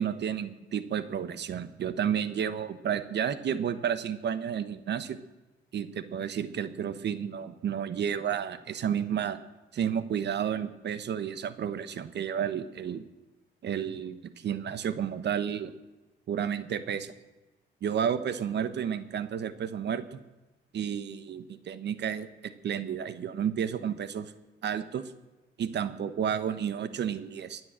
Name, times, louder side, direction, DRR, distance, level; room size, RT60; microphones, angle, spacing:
voice 1, 0.0-5.2 5.7-9.4 9.7-13.0 13.6-15.7 16.3-17.1 17.8-20.2 20.7-24.3 24.6-25.1 25.6-27.6, right 8 dB, 60° right, 13 dB, 1.2 m, -31 dB
21.5 x 7.9 x 7.5 m, 1.1 s
cardioid pair, 90°, 20 cm